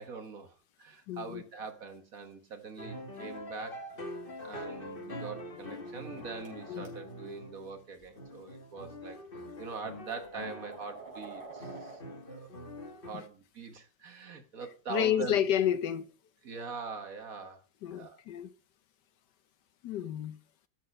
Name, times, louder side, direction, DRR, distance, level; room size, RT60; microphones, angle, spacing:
voice 1, 0.0-3.8 4.4-9.2 9.6-12.0 12.2-12.5 13.1-15.4 16.4-17.6 17.9-18.2, right 5 dB, 50° right, 1.7 m, -43 dB
voice 2, 1.1-1.4 6.7-6.9 13.1-13.2 14.9-16.1 17.8-18.5 19.8-20.4, left 10 dB, 70° left, 1.2 m, -30 dB
sound 1, 2.8-7.8 8.2-10.9 11.6-13.1, left 1 dB, 30° left, 1.7 m, -44 dB
sound 2, 5.8-6.9 8.0-8.1 9.1-9.2 9.7-12.0, right 3 dB, 20° right, 4.8 m, -48 dB
13.5 x 6.5 x 5.2 m
omnidirectional pair, 2.0 m